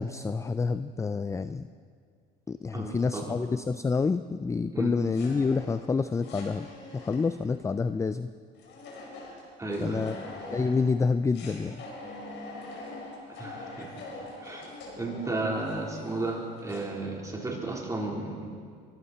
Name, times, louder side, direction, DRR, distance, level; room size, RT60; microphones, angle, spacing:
voice 1, 0.0-1.7 2.5-6.7 6.9-8.3 9.8-10.2 10.5-11.8, left 4 dB, 15° left, 13 dB, 0.4 m, -28 dB
voice 2, 2.7-3.3 4.7-4.9 9.6-10.1 13.3-14.0 14.4-18.5, right 2 dB, 15° right, -2 dB, 3.9 m, -34 dB
sound 1, 5.1-7.6 8.5-10.9 11.3-16.9, left 2 dB, 70° left, 5.0 m, -44 dB
23.5 x 14.0 x 4.3 m, 2.2 s
cardioid pair, 100°, 19 cm